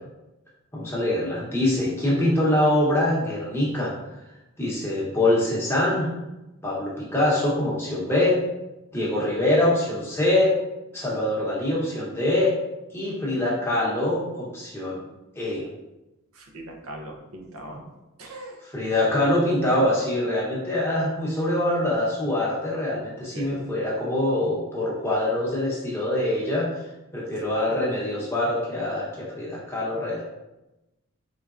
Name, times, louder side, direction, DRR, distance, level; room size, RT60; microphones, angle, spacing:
voice 1, 0.7-3.9 4.6-6.1 6.6-8.3 8.9-10.5 10.9-12.5 12.9-15.0 15.4-15.7 18.7-26.7 27.1-30.2, left 1 dB, 10° left, -6 dB, 0.8 m, -24 dB
voice 2, 16.3-17.8 18.2-18.6 23.3-23.7, right 1 dB, 80° right, 2 dB, 0.6 m, -40 dB
3.9 x 3.3 x 2.4 m, 0.99 s
head